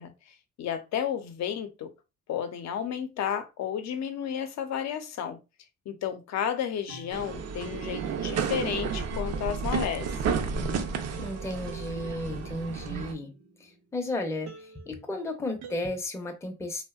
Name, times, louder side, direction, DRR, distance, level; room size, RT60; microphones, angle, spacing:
voice 1, 0.0-1.9 2.3-5.4 5.9-10.1, left 9 dB, 65° left, 0.6 m, -32 dB
sound 1, 6.7-14.0 14.5-15.8, right 4 dB, 85° right, 0.8 m, -47 dB
sound 2, 7.1-13.1, right 5 dB, 60° right, 0.5 m, -32 dB
voice 2, 11.2-13.3 13.6-16.8, left 1 dB, 10° left, 0.5 m, -34 dB
2.6 x 2.1 x 2.3 m
cardioid pair, 90°, 30 cm